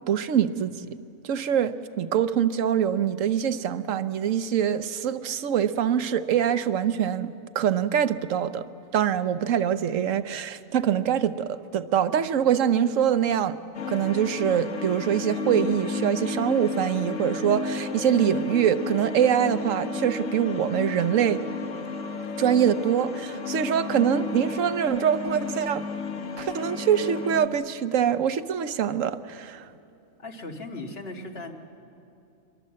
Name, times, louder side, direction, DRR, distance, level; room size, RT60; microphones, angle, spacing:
voice 1, 0.1-0.9 1.2-8.7 8.9-13.6 13.9-21.4 22.4-25.8 26.4-29.6, right 9 dB, 80° right, 12 dB, 1.1 m, -24 dB
sound 1, 13.7-27.5, left 4 dB, 70° left, 1.4 m, -33 dB
voice 2, 30.2-31.5, left 2 dB, 50° left, 3 dB, 1.9 m, -37 dB
24.0 x 22.5 x 7.5 m, 2.6 s
omnidirectional pair, 1.3 m